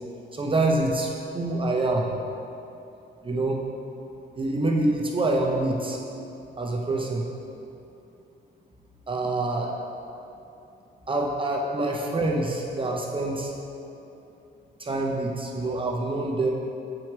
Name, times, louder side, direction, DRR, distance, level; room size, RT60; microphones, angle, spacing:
voice 1, 0.3-2.1 3.2-3.6 4.4-6.0 6.6-7.2 9.1-9.8 11.1-13.5 14.8-16.5, right 2 dB, 25° right, 0 dB, 0.7 m, -26 dB
7.7 x 4.5 x 4.6 m, 2.8 s
cardioid pair, 90°, 20 cm